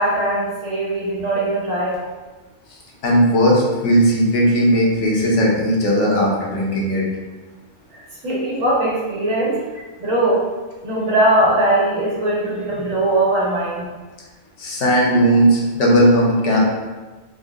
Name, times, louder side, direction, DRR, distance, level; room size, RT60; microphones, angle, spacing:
voice 1, 0.0-1.9 8.2-9.6 10.0-10.4 10.8-13.8, right 1 dB, 85° right, -6 dB, 1.5 m, -20 dB
voice 2, 3.0-7.0 14.6-16.6, equal, 70° left, -3 dB, 1.1 m, -16 dB
3.6 x 2.2 x 3.5 m, 1.3 s
omnidirectional pair, 1.3 m